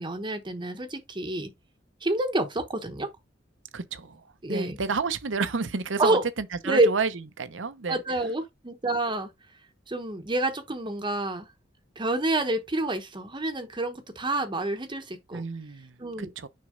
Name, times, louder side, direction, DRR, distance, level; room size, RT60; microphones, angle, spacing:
voice 1, 0.0-1.5 2.0-3.1 4.4-4.8 6.0-6.2 6.6-6.9 7.9-9.3 9.9-11.5 12.0-15.4 16.0-16.3, right 2 dB, 25° right, 0.9 m, -28 dB
voice 2, 3.7-7.1 7.4-8.2 15.3-16.5, right 4 dB, 80° right, 0.8 m, -31 dB
6.5 x 4.1 x 3.8 m
head